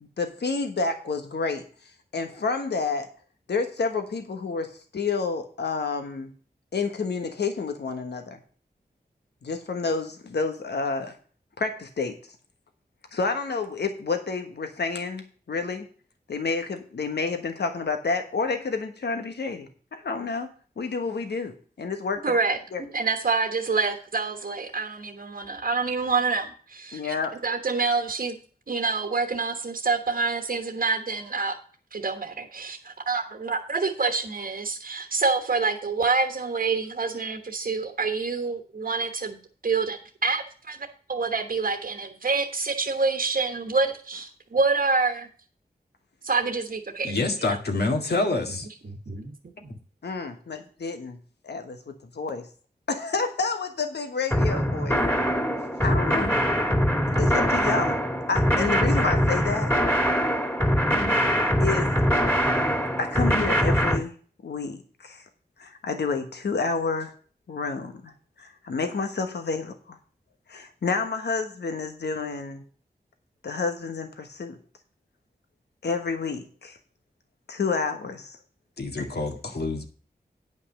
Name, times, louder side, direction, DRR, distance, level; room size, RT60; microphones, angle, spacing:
voice 1, 0.0-1.6 2.1-3.1 3.5-6.3 6.7-8.4 9.4-11.1 11.6-12.1 13.1-15.2 15.5-15.9 16.3-20.5 20.8-22.4 22.7-22.8 26.9-27.3 50.0-51.2 51.4-52.5 52.9-55.0 55.8-56.3 57.2-58.0 58.3-59.7 61.6-61.9 63.0-64.1 64.4-65.2 65.6-67.1 67.5-68.1 68.4-70.0 70.5-72.6 73.4-74.6 75.8-76.8 77.5-78.4 79.0-79.1, left 4 dB, 90° left, 1.3 m, -29 dB
voice 2, 22.2-22.6 22.9-27.1 27.4-28.4 28.7-31.5 31.9-39.4 39.6-40.8 41.1-45.3 46.2-47.1 49.1-49.3 49.6-49.7, right 4 dB, 60° right, 1.3 m, -27 dB
voice 3, 47.0-48.7 78.8-79.9, left 2 dB, 75° left, 1.8 m, -27 dB
sound 1, 54.3-64.0, equal, 15° left, 2.5 m, -23 dB
9.6 x 5.5 x 6.5 m
wide cardioid pair, 65°, 17 cm